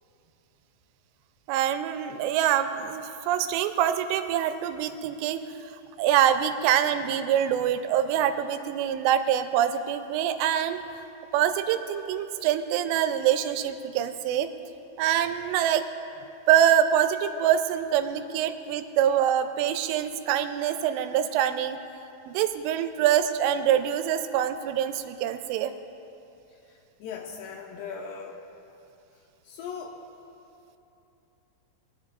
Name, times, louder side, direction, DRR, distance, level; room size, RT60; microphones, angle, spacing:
voice 1, 1.5-5.4 6.0-10.8 11.3-14.5 15.0-15.9 16.5-21.8 22.3-25.7, right 10 dB, 85° right, 9 dB, 2.7 m, -25 dB
voice 2, 26.7-28.4 29.4-30.0, left 6 dB, 85° left, -1 dB, 2.8 m, -39 dB
20.0 x 10.5 x 2.4 m, 2.8 s
omnidirectional pair, 5.0 m